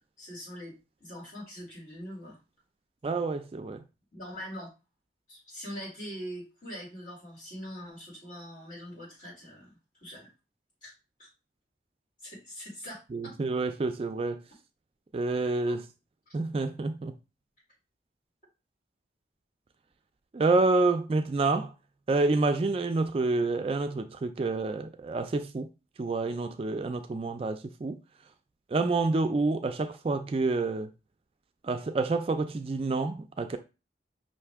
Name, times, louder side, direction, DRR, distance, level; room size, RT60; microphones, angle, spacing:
voice 1, 0.2-2.4 4.1-4.7 5.3-10.3 10.8-10.9 11.2-11.3 12.2-13.3 15.6-15.8 16.3-16.4, equal, 50° left, 2.5 m, -43 dB
voice 2, 3.0-3.8 13.1-14.4 15.1-15.8 16.3-17.2 20.3-21.7 22.1-25.7 26.0-28.0 28.7-30.9 31.6-33.6, right 3 dB, 30° right, 0.3 m, -28 dB
5.7 x 2.5 x 3.5 m
head